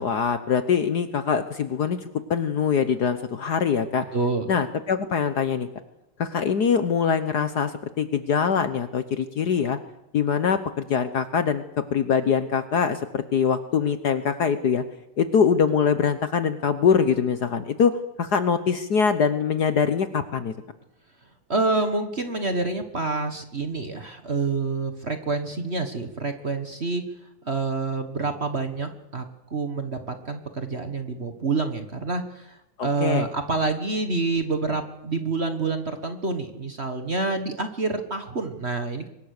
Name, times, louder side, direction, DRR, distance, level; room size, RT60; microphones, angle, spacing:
voice 1, 0.0-2.0 2.3-4.1 4.5-5.7 6.2-9.8 10.1-11.6 11.9-14.8 15.2-20.5 32.8-33.3, left 6 dB, 55° left, 11 dB, 1.4 m, -23 dB
voice 2, 4.1-4.5 21.5-27.0 27.4-29.2 29.5-39.1, right 3 dB, 30° right, 7 dB, 1.6 m, -27 dB
24.0 x 21.0 x 6.7 m, 0.85 s
omnidirectional pair, 2.4 m